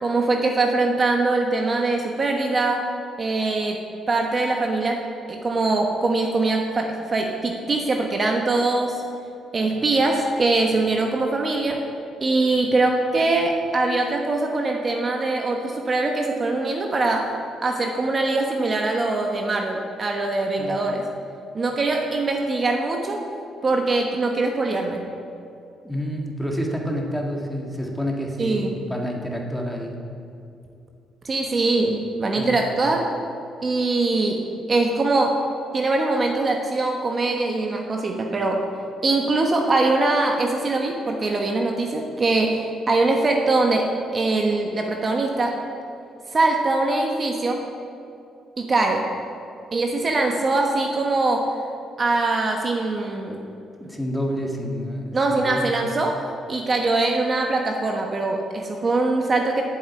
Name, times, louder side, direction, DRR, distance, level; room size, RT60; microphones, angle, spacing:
voice 1, 0.0-2.9 3.2-3.8 4.1-5.0 5.3-9.0 9.5-11.8 12.2-17.3 17.6-21.0 21.5-23.2 23.6-25.0 28.4-28.7 31.2-33.1 33.6-34.4 34.7-35.4 35.7-38.6 39.0-45.6 46.3-47.7 48.6-49.1 49.7-51.5 52.0-53.4 55.1-59.6, right 2 dB, 35° right, 2 dB, 1.0 m, -22 dB
voice 2, 25.8-30.0 32.4-32.6 53.8-55.7, equal, 5° left, 0 dB, 1.8 m, -28 dB
7.8 x 7.7 x 8.7 m, 2.6 s
cardioid pair, 90°, 0 cm